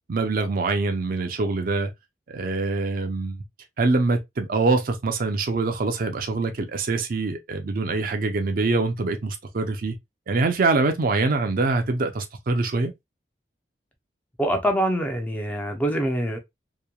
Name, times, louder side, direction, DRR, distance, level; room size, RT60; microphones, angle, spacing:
voice 1, 0.1-1.9 2.3-3.4 3.8-10.0 10.3-12.9, right 3 dB, 55° right, 0.5 m, -24 dB
voice 2, 14.4-16.4, equal, 10° left, 0.5 m, -24 dB
2.9 x 2.1 x 2.2 m
head